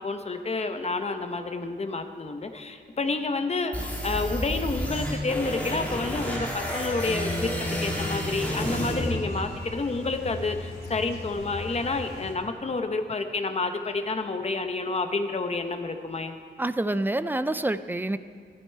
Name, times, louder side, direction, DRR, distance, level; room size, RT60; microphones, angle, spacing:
voice 1, 0.0-7.5 7.8-16.3, left 3 dB, 35° left, 7 dB, 0.8 m, -29 dB
sound 1, 3.7-9.7, equal, 10° left, 2.2 m, -30 dB
sound 2, 6.7-12.3, left 2 dB, 50° left, 2.5 m, -40 dB
voice 2, 16.6-18.2, right 1 dB, 10° right, 12 dB, 0.3 m, -27 dB
15.0 x 12.0 x 4.5 m, 2.1 s
wide cardioid pair, 165°, 19 cm